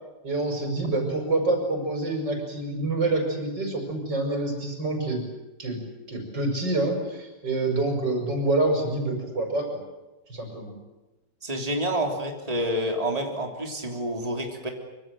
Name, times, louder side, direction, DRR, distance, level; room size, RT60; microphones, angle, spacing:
voice 1, 0.2-5.2 5.6-5.8 6.1-9.8 10.3-10.8, right 2 dB, 90° right, 4 dB, 6.0 m, -27 dB
voice 2, 11.4-14.7, right 1 dB, 20° right, 2 dB, 3.4 m, -28 dB
25.0 x 24.5 x 7.7 m, 1.1 s
omnidirectional pair, 1.9 m